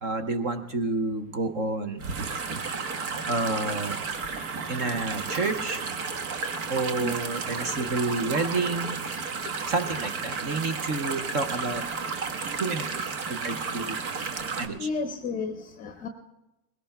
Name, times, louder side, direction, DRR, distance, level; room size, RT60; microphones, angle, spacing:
voice 1, 0.0-2.1 3.3-4.0 4.7-5.9 6.7-9.0 9.7-11.8 12.6-12.9 13.3-14.0 14.6-14.9, right 3 dB, 20° right, 10 dB, 0.3 m, -29 dB
sound 1, 2.0-14.7, right 4 dB, 60° right, 1.4 m, -32 dB
voice 2, 14.8-16.1, left 4 dB, 15° left, 7 dB, 0.7 m, -32 dB
21.0 x 17.0 x 2.2 m, 0.97 s
hypercardioid pair, 130°, 48 cm